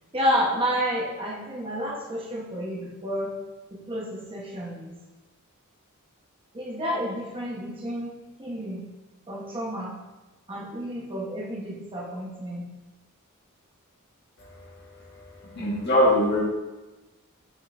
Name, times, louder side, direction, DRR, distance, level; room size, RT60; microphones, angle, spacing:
voice 1, 0.1-3.4 3.7-4.9 6.5-8.8 9.3-9.9 10.5-12.7, equal, 25° right, -4 dB, 1.2 m, -30 dB
voice 2, 15.5-16.4, left 1 dB, 50° left, -4 dB, 1.7 m, -21 dB
7.5 x 5.4 x 2.7 m, 1.1 s
head